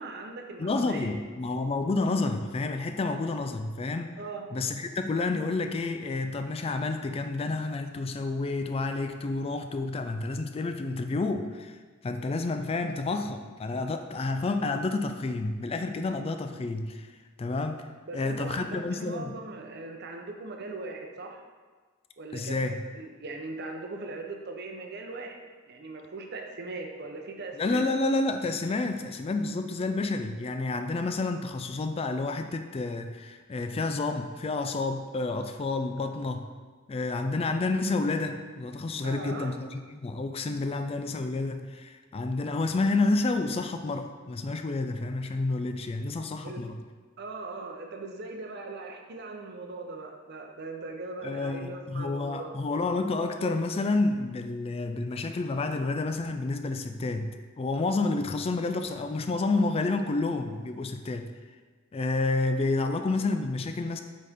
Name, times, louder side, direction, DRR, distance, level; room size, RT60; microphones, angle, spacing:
voice 1, 0.0-1.1 4.2-4.4 18.1-21.4 22.2-25.4 25.7-27.8 39.0-39.5 46.4-46.6 47.2-52.5, right 3 dB, 55° right, 3 dB, 0.7 m, -39 dB
voice 2, 0.6-4.2 4.5-17.1 17.4-17.9 18.1-19.4 22.3-22.8 27.6-36.4 36.9-46.8 51.2-61.3 61.9-64.0, left 3 dB, 30° left, 7 dB, 0.3 m, -29 dB
8.4 x 4.2 x 3.5 m, 1.4 s
head